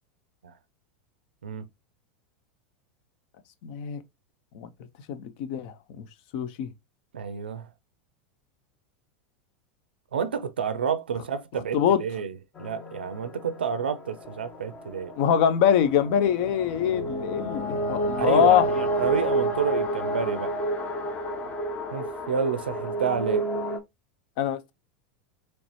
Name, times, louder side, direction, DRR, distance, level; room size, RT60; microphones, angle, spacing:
voice 1, 3.6-4.0 4.5-4.7 5.1-6.0 6.3-6.7 11.7-12.0 15.2-18.6 24.4-24.7, left 9 dB, 60° left, 0.6 m, -23 dB
voice 2, 7.1-7.7 10.1-15.1 18.2-20.6 21.9-23.5, right 7 dB, 85° right, 0.4 m, -29 dB
sound 1, 12.6-23.8, right 1 dB, 30° left, 0.9 m, -30 dB
4.1 x 3.2 x 3.0 m
hypercardioid pair, 90°, 5 cm